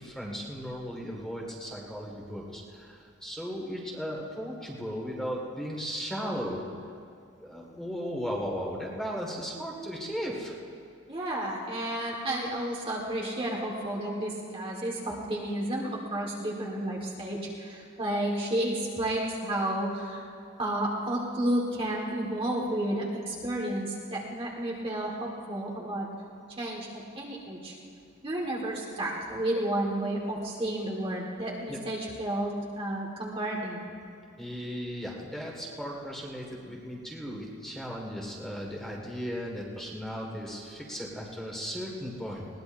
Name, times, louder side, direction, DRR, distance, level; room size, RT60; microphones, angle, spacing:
voice 1, 0.0-6.6 7.4-10.6 31.7-31.8 34.4-42.5, equal, ahead, -2 dB, 1.8 m, -36 dB
voice 2, 11.1-20.2 20.6-26.1 26.6-26.9 27.2-27.7 28.2-33.8, right 1 dB, 30° right, -3 dB, 1.5 m, -31 dB
21.0 x 18.0 x 2.6 m, 2.4 s
head